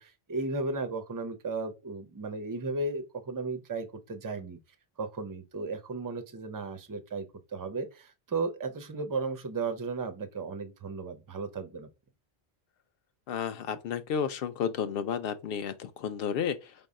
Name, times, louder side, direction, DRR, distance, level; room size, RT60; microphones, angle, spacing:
voice 1, 0.0-4.6 5.0-7.3 7.5-11.9, right 3 dB, 25° right, 0.4 m, -35 dB
voice 2, 13.3-16.7, left 7 dB, 65° left, 0.7 m, -32 dB
5.3 x 2.1 x 3.5 m
omnidirectional pair, 1.1 m